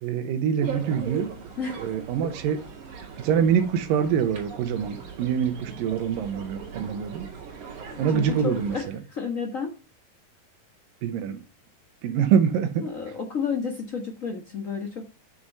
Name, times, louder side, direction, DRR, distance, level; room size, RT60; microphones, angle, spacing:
voice 1, 0.0-1.3 1.8-2.6 2.9-7.3 8.0-9.0 11.0-11.4 12.0-12.9, right 7 dB, 85° right, 2.7 m, -25 dB
sound 1, 0.6-8.9, right 6 dB, 60° right, 3.7 m, -40 dB
voice 2, 7.9-8.8 9.1-9.7 12.8-15.1, left 5 dB, 75° left, 0.7 m, -31 dB
7.9 x 6.4 x 6.7 m
omnidirectional pair, 3.9 m